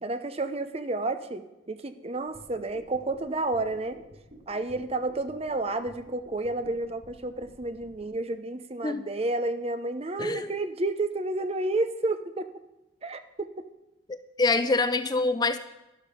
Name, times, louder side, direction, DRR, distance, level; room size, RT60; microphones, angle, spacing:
voice 1, 0.0-4.0 4.5-12.5 13.0-13.5, right 2 dB, 30° right, 10 dB, 0.7 m, -31 dB
sound 1, 2.1-8.0, equal, 55° right, 3.8 m, -52 dB
voice 2, 10.2-10.5 14.1-15.6, left 3 dB, 20° left, 11 dB, 0.4 m, -25 dB
12.5 x 11.5 x 5.0 m, 0.96 s
head